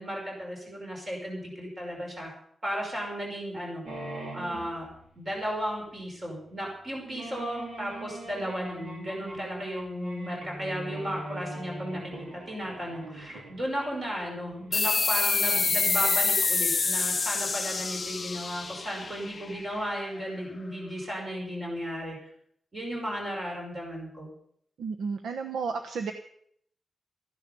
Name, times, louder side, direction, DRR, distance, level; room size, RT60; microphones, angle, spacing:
voice 1, 0.0-2.3 2.6-3.8 4.3-4.9 5.2-22.3 22.7-24.3, equal, 30° right, -1 dB, 5.8 m, -35 dB
sound 1, 3.9-5.4 5.9-6.0 6.2-6.3 7.0-19.7, right 2 dB, 65° right, 4.4 m, -43 dB
sound 2, 14.7-19.9, left 4 dB, 30° left, 0.6 m, -27 dB
voice 2, 24.8-26.1, right 5 dB, 80° right, 6 dB, 1.1 m, -32 dB
15.0 x 10.5 x 6.9 m, 0.67 s
wide cardioid pair, 165°, 0 cm